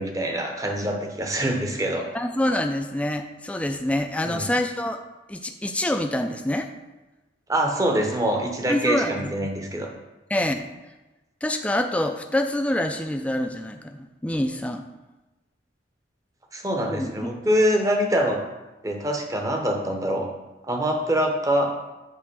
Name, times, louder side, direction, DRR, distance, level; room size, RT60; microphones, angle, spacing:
voice 1, 0.0-2.1 4.2-4.5 7.5-9.9 16.5-18.4 18.8-20.3 20.6-21.7, equal, 15° right, 2 dB, 0.8 m, -24 dB
voice 2, 2.1-5.0 5.3-6.7 8.7-9.5 10.3-10.6 11.4-14.9 16.9-17.3, left 1 dB, 5° left, 5 dB, 0.4 m, -26 dB
8.2 x 3.2 x 6.1 m, 1.1 s
head